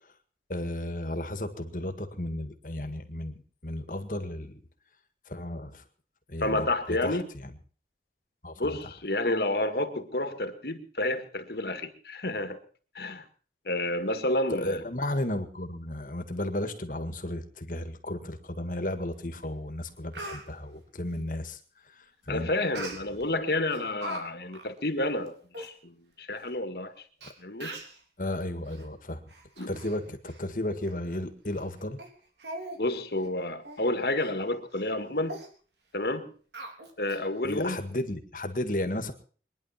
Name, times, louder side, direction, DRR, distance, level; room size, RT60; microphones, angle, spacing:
voice 1, 0.5-3.3 3.6-4.6 5.3-5.8 6.3-7.5 8.4-8.8 14.5-21.6 21.9-22.5 28.2-29.2 29.7-32.0 37.4-39.1, left 1 dB, 50° left, 8 dB, 1.9 m, -34 dB
voice 2, 6.4-7.3 8.6-12.6 13.0-13.3 13.7-14.8 22.3-27.0 27.4-27.7 29.6-29.7 32.8-35.4 35.9-36.3 37.0-37.8, left 1 dB, 65° left, 7 dB, 1.9 m, -30 dB
Speech, 19.4-19.5 19.9-20.4 22.7-23.3 23.7-24.2 24.5-24.7 25.3-25.4 25.5-25.7 26.5-26.6 27.2-27.3 27.6-28.0 28.6-28.8 29.3-30.0 30.3-30.4 30.9-31.0 31.5-31.6 32.0-32.1 32.4-32.8 33.1-33.3 33.6-33.8 34.2-34.3 34.7-34.9 35.3-35.5 36.5-37.2 37.6-37.7, right 1 dB, 80° right, 3.6 m, -40 dB
23.0 x 10.5 x 5.8 m, 0.43 s
head